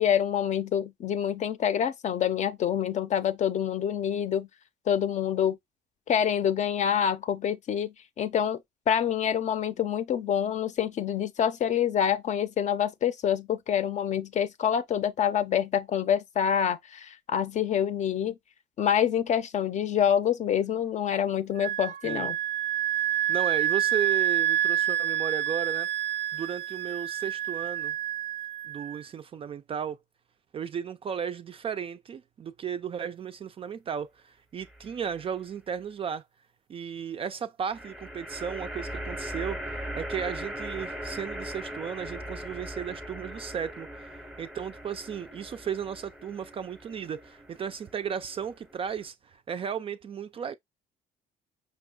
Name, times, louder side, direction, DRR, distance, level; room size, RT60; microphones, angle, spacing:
voice 1, 0.0-4.5 4.9-5.6 6.1-8.6 8.9-18.4 18.8-22.4, left 9 dB, 45° left, 0.6 m, -26 dB
Wind instrument woodwind instrument, 21.6-29.0, right 11 dB, 85° right, 0.5 m, -28 dB
voice 2, 23.3-25.9 26.3-28.0 28.6-30.0 30.5-36.2 36.7-44.1 44.4-50.5, right 7 dB, 35° right, 0.3 m, -35 dB
sound 1, 34.6-35.2 37.7-49.1, equal, 5° right, 0.7 m, -40 dB
5.3 x 2.2 x 3.7 m
cardioid pair, 110°, 17 cm